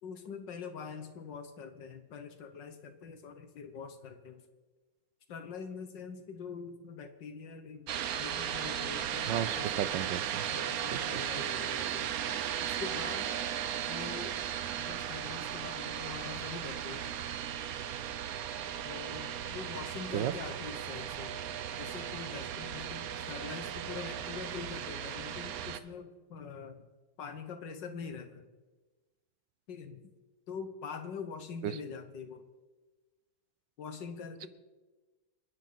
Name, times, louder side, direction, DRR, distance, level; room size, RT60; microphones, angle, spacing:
voice 1, 0.0-4.4 5.3-9.9 10.5-13.5 13.9-14.4 14.8-17.2 18.8-21.4 21.8-26.8 27.2-28.4 29.7-30.0 30.5-32.5 33.8-34.5, left 5 dB, 80° left, 8 dB, 2.0 m, -44 dB
sound 1, 7.9-25.8, right 9 dB, 60° right, 1.1 m, -36 dB
voice 2, 9.3-10.5 10.9-11.2 20.1-20.3 31.6-31.7, right 11 dB, 80° right, 15 dB, 1.4 m, -34 dB
27.5 x 10.5 x 4.1 m, 1.2 s
omnidirectional pair, 1.9 m